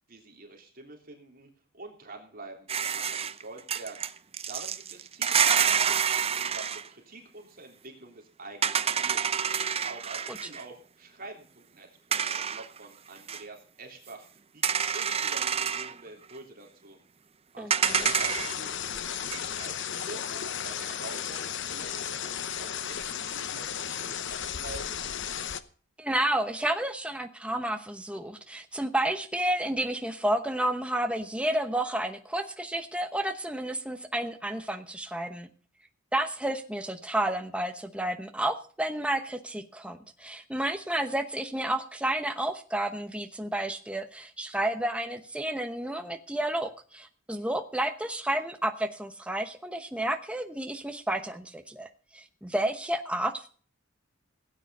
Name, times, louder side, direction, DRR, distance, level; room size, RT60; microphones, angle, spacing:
voice 1, 0.1-4.0 4.5-9.2 9.8-14.3 14.5-17.0 17.5-23.2 23.5-25.0, right 3 dB, 45° right, 2 dB, 3.3 m, -47 dB
sound 1, 2.7-6.9 8.6-10.6 12.1-12.8 13.3-13.4 14.6-15.9 17.7-18.7 19.1-19.6, right 7 dB, 30° right, 0.6 m, -27 dB
voice 2, 17.6-18.1 26.0-35.5 36.1-51.9 52.1-53.5, right 1 dB, 5° right, 6 dB, 1.0 m, -31 dB
sound 2, 17.8-25.6, left 8 dB, 65° left, 0.9 m, -34 dB
17.0 x 9.2 x 5.5 m, 0.41 s
head